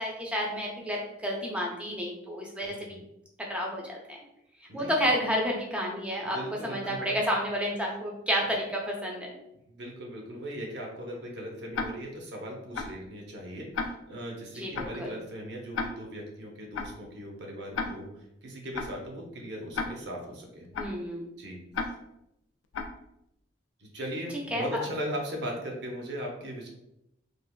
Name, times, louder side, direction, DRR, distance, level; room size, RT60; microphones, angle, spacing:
voice 1, 0.0-3.0 3.5-4.2 4.7-6.4 6.6-9.3 14.5-15.1 20.8-21.3 24.3-24.8, equal, 5° right, -2 dB, 0.5 m, -30 dB
voice 2, 2.6-3.0 4.7-4.9 6.3-7.1 9.7-18.1 18.4-20.7 21.4-21.6 23.8-26.7, equal, 60° right, 0 dB, 0.6 m, -38 dB
Tick-tock, 11.7-11.9 12.7-12.9 13.7-13.9 14.7-14.9 15.7-15.9 16.7-16.9 17.7-17.9 18.7-18.9 19.7-19.9 20.7-20.9 21.7-21.9 22.7-22.9, left 5 dB, 85° left, 0.3 m, -31 dB
3.2 x 2.4 x 2.2 m, 0.84 s
head